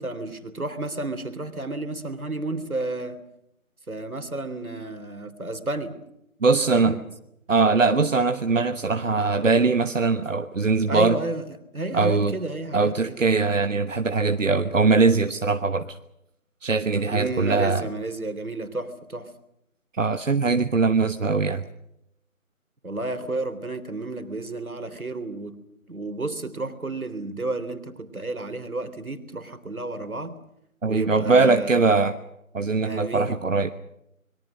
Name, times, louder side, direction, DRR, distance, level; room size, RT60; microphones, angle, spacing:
voice 1, 0.0-3.2 3.9-6.0 6.7-7.0 10.9-11.5 11.7-13.2 17.1-19.3 22.8-25.6 25.9-30.4 30.9-31.8 32.8-33.4, right 2 dB, 80° right, 10 dB, 3.6 m, -31 dB
voice 2, 6.4-7.0 7.5-11.2 11.9-12.3 12.7-16.0 16.6-17.8 20.0-21.6 30.8-32.1 32.5-33.7, right 4 dB, 60° right, 8 dB, 1.3 m, -21 dB
25.5 x 22.5 x 6.4 m, 0.81 s
figure-of-eight pair, 165°, 42 cm